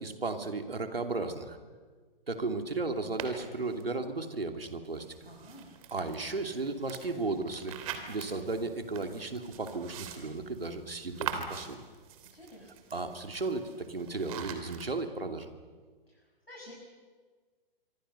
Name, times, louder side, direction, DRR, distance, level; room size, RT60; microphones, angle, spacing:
voice 1, 0.0-1.6 2.3-5.1 5.9-7.8 8.1-11.8 12.9-15.5, right 3 dB, 75° right, 6 dB, 2.9 m, -35 dB
sound 1, 3.2-3.8 4.8-14.9, right 8 dB, 35° right, 3.1 m, -44 dB
voice 2, 5.2-5.7 12.3-12.7 16.1-16.7, left 1 dB, 85° left, -3 dB, 6.6 m, -51 dB
26.0 x 24.5 x 6.8 m, 1.5 s
figure-of-eight pair, 120°, 29 cm